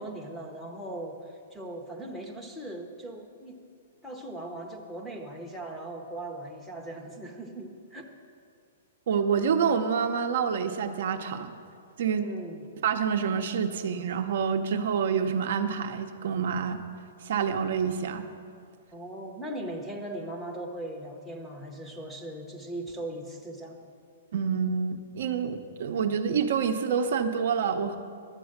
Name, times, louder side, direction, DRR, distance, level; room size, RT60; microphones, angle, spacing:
voice 1, 0.0-3.6 4.0-8.1 12.2-12.7 18.9-23.8, right 1 dB, ahead, 2 dB, 0.7 m, -39 dB
voice 2, 9.1-11.5 12.0-12.3 12.8-16.8 17.2-18.3 24.3-28.0, right 6 dB, 55° right, 7 dB, 0.7 m, -27 dB
11.5 x 7.9 x 6.5 m, 2.3 s
hypercardioid pair, 175°, 0 cm